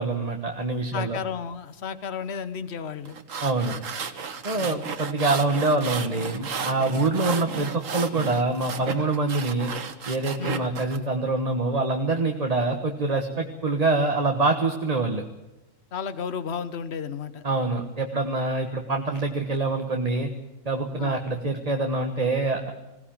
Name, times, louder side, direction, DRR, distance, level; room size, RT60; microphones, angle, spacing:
voice 1, 0.0-1.2 3.4-3.8 4.4-9.7 10.1-15.2 17.4-20.3 20.6-22.7, right 3 dB, 30° right, 3 dB, 1.4 m, -25 dB
voice 2, 0.9-3.2 4.5-4.8 7.3-7.4 10.4-10.5 15.9-17.4 21.0-21.2, left 6 dB, 55° left, 13 dB, 1.4 m, -33 dB
sound 1, 3.1-11.0, right 6 dB, 85° right, 1.7 m, -34 dB
21.0 x 17.0 x 9.0 m, 1.0 s
omnidirectional pair, 1.3 m